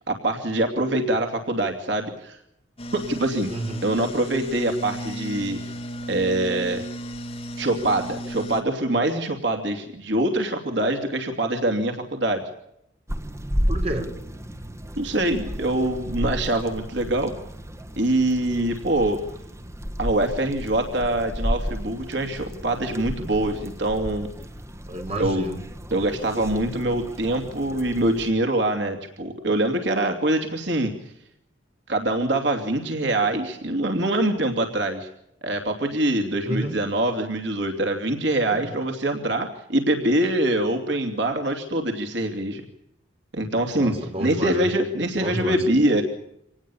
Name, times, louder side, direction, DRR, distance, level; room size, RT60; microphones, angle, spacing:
voice 1, 0.0-2.4 2.9-3.5 3.8-5.6 6.1-6.8 7.6-12.5 15.0-17.3 18.0-19.2 20.0-24.3 25.2-25.4 25.9-31.1 31.9-35.1 35.4-42.6 43.3-46.0, right 1 dB, 70° right, 4 dB, 2.8 m, -24 dB
sound 1, 2.8-8.6, right 1 dB, 30° left, 2.8 m, -34 dB
voice 2, 3.5-3.8 13.7-14.1 24.9-25.6 36.4-36.8 38.5-38.7 43.7-44.7 45.1-45.6, right 1 dB, 35° right, 4 dB, 4.6 m, -30 dB
sound 2, 13.1-28.3, equal, 15° right, 1.6 m, -33 dB
26.0 x 19.0 x 7.2 m, 0.78 s
head